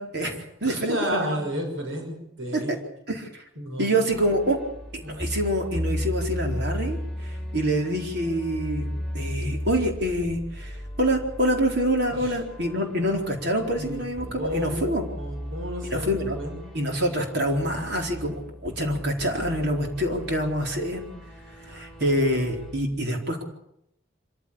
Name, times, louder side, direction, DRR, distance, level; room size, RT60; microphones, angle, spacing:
voice 1, 0.0-1.4 2.5-2.6 3.1-3.4 3.8-4.6 4.9-8.9 9.1-15.1 15.9-16.4 16.7-21.0 21.6-23.4, equal, 55° right, 2 dB, 4.3 m, -26 dB
voice 2, 0.6-2.7 3.6-3.9 5.0-5.2 12.1-12.4 13.8-14.8 15.2-16.6 16.9-17.0, equal, 80° right, 3 dB, 6.0 m, -32 dB
sound 1, 4.1-22.8, equal, ahead, 4.2 m, -36 dB
25.5 x 15.0 x 8.8 m, 0.78 s
head